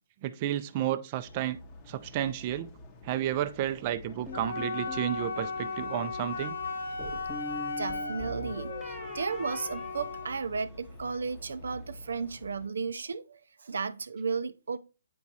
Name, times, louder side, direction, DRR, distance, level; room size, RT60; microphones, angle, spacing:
voice 1, 0.2-1.6 1.9-2.7 3.0-6.5, right 11 dB, 30° right, 0.4 m, -31 dB
sound 1, 1.2-12.7, left 1 dB, 25° left, 0.7 m, -49 dB
Wind instrument woodwind instrument, 4.3-10.4, left 4 dB, 75° left, 0.9 m, -36 dB
sound 2, 4.3-5.1 7.0-10.8, right 1 dB, 5° right, 1.2 m, -43 dB
voice 2, 7.8-14.8, right 5 dB, 85° right, 0.5 m, -34 dB
8.5 x 4.6 x 2.7 m
hypercardioid pair, 160°, 0 cm